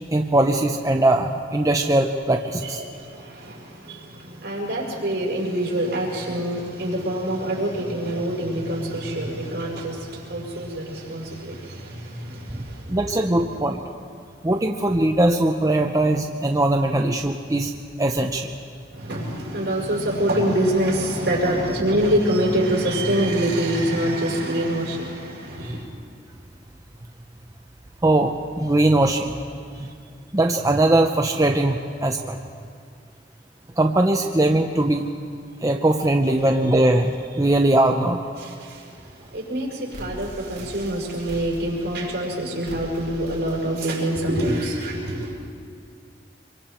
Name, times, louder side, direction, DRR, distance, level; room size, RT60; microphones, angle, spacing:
voice 1, 0.1-2.8 12.5-12.6 12.9-13.8 14.4-17.7 18.0-18.5 28.0-29.3 29.8-29.9 30.3-32.4 33.8-35.1 35.6-38.2, right 1 dB, 20° right, 3 dB, 0.7 m, -20 dB
voice 2, 2.6-13.0 18.9-25.8 36.3-36.4 38.4-45.3, right 1 dB, 65° right, -3 dB, 5.6 m, -25 dB
sound 1, 39.9-42.0 42.7-43.6 44.0-44.1 44.6-44.9, equal, 45° right, 2.7 m, -40 dB
25.0 x 23.5 x 4.5 m, 2.3 s
head